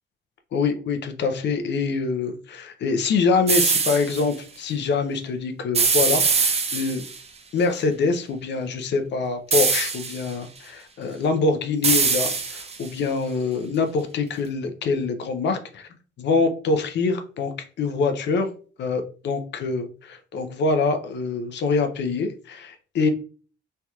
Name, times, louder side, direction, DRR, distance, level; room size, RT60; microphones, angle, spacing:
voice 1, 0.5-7.0 7.5-15.9 16.2-18.5 18.8-23.1, left 4 dB, 65° left, 7 dB, 0.6 m, -25 dB
sound 1, 3.5-4.2 5.7-7.2 9.5-10.3 11.8-12.9, right 5 dB, 30° right, 0.6 m, -22 dB
3.2 x 2.8 x 2.3 m, 0.38 s
cardioid pair, 90°, 20 cm